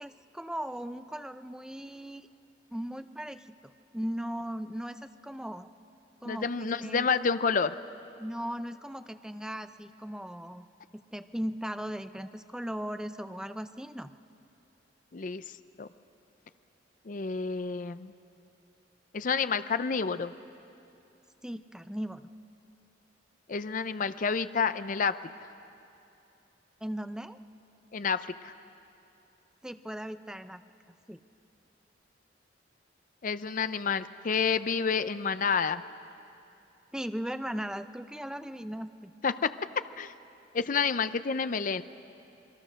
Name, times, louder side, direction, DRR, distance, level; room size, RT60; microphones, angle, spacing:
voice 1, 0.0-2.3 2.7-3.5 3.9-5.7 6.2-7.1 8.2-10.7 10.9-14.1 21.4-22.3 26.8-27.4 29.6-30.6 31.1-31.2 36.9-39.1, equal, 5° right, 10 dB, 0.5 m, -37 dB
voice 2, 6.2-7.8 15.1-15.4 15.8-15.9 17.1-18.1 19.1-20.3 23.5-25.2 27.9-28.5 33.2-35.8 39.2-39.5 40.0-40.1 40.5-41.8, left 5 dB, 45° left, 12 dB, 0.5 m, -29 dB
27.5 x 22.0 x 6.4 m, 2.8 s
head